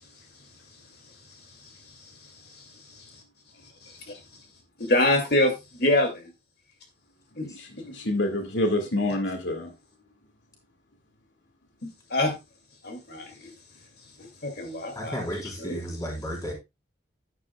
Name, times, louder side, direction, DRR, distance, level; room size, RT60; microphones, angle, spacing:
voice 1, 1.5-3.2 3.8-4.2 4.8-6.3 7.4-7.5 7.8-7.9 11.8-12.3 12.8-13.5 14.2-15.2 15.6-15.8, left 1 dB, 55° left, 2.5 m, -27 dB
voice 2, 7.4-9.7, left 1 dB, 80° left, 1.9 m, -27 dB
voice 3, 15.0-16.5, equal, 20° left, 3.9 m, -33 dB
11.0 x 10.5 x 2.3 m
head